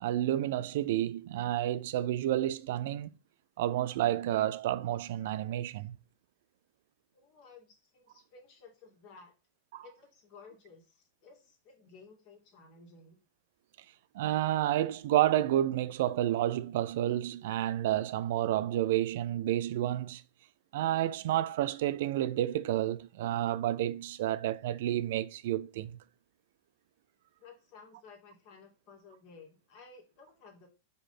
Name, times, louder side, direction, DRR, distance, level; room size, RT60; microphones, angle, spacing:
voice 1, 0.0-3.1 3.6-6.0 9.7-9.8 14.1-20.2 20.7-26.0, right 13 dB, 55° right, 0.5 m, -30 dB
voice 2, 7.1-9.3 9.8-13.2 27.4-30.7, left 4 dB, 45° left, 2.5 m, -55 dB
5.3 x 4.1 x 5.8 m
figure-of-eight pair, 90°, 0 cm